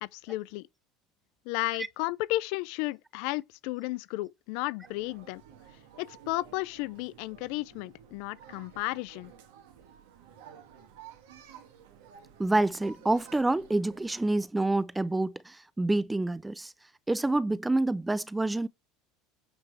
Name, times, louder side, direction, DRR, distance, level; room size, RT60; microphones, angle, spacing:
voice 1, 0.0-0.7 1.5-5.4 6.0-9.3, left 20 dB, 70° left, 0.4 m, -33 dB
sound 1, 4.8-14.2, right 8 dB, 85° right, 1.8 m, -53 dB
voice 2, 12.4-16.7 17.1-18.7, right 2 dB, 10° right, 0.5 m, -27 dB
8.8 x 3.3 x 5.9 m
supercardioid pair, 110°, 0 cm